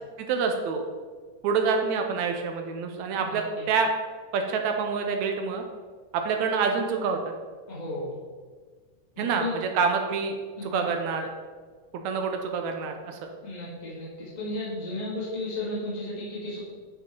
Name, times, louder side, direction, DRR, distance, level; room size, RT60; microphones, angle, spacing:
voice 1, 0.2-0.8 1.4-3.9 4.3-5.6 6.1-7.2 9.2-9.4 9.7-10.4 10.6-11.3 11.9-13.3, right 5 dB, 75° right, 4 dB, 1.8 m, -27 dB
voice 2, 3.1-3.6 7.7-8.1 9.1-9.5 10.6-10.9 13.4-16.6, left 2 dB, 15° left, -8 dB, 1.6 m, -34 dB
10.5 x 5.3 x 4.5 m, 1.5 s
omnidirectional pair, 3.9 m